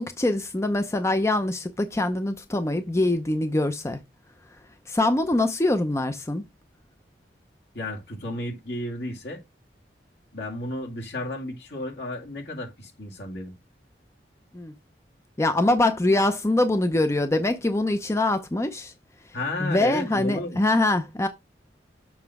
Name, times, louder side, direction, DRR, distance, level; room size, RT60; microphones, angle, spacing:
voice 1, 0.0-4.0 4.9-6.4 14.5-14.7 15.4-18.9 19.6-21.3, left 2 dB, 15° left, 0.5 m, -23 dB
voice 2, 7.7-9.4 10.3-13.5 19.3-20.6, left 1 dB, 70° left, 2.3 m, -33 dB
7.1 x 5.7 x 3.5 m
head